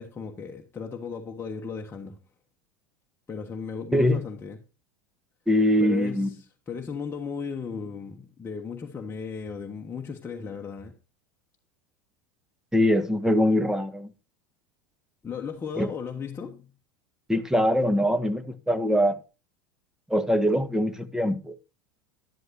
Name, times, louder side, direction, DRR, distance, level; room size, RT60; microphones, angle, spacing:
voice 1, 0.0-2.2 3.3-4.6 5.8-10.9 15.2-16.7, left 5 dB, 20° left, 1.4 m, -36 dB
voice 2, 5.5-6.3 12.7-14.1 15.8-15.9 17.3-19.2 20.1-21.6, equal, 5° right, 1.3 m, -23 dB
11.5 x 11.5 x 2.7 m
figure-of-eight pair, 80°, 11 cm